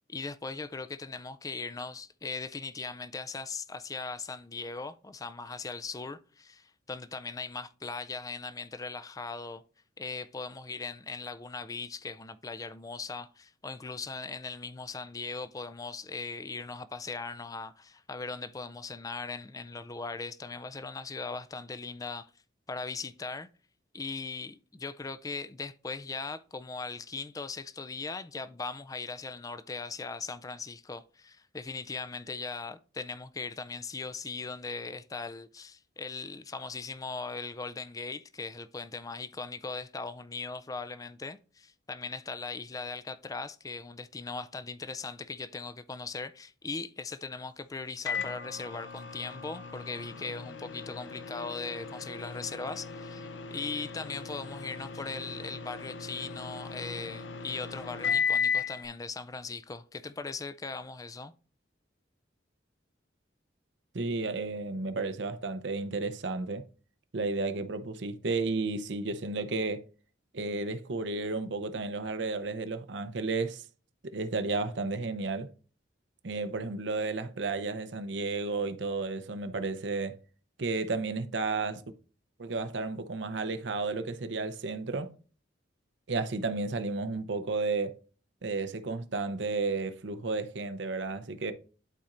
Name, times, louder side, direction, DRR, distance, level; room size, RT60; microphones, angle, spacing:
voice 1, 0.1-9.6 10.0-22.3 22.7-23.5 23.9-61.3, left 4 dB, 20° left, 0.4 m, -39 dB
Microwave oven, 48.1-58.8, left 6 dB, 75° left, 0.7 m, -36 dB
voice 2, 63.9-66.6 67.1-69.8 70.3-73.6 74.0-75.5 76.2-80.2 80.6-81.8 82.4-85.1 86.1-88.0 88.4-91.5, right 3 dB, 75° right, 0.7 m, -32 dB
11.5 x 4.3 x 2.5 m
head